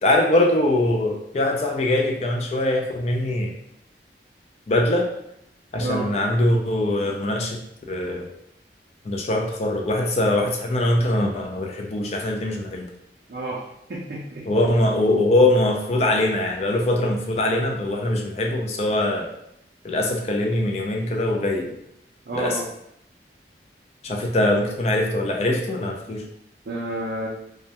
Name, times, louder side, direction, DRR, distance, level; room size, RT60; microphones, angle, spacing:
voice 1, 0.0-3.5 4.7-5.1 5.7-7.6 7.9-8.3 9.0-12.9 14.5-19.3 19.8-21.7 22.3-22.6 24.0-26.2, left 1 dB, 35° left, 1 dB, 0.3 m, -22 dB
voice 2, 5.8-6.1 13.3-13.6 13.9-14.5 22.3-22.6 26.7-27.3, right 2 dB, 55° right, -4 dB, 0.4 m, -30 dB
2.2 x 2.1 x 2.7 m, 0.77 s
head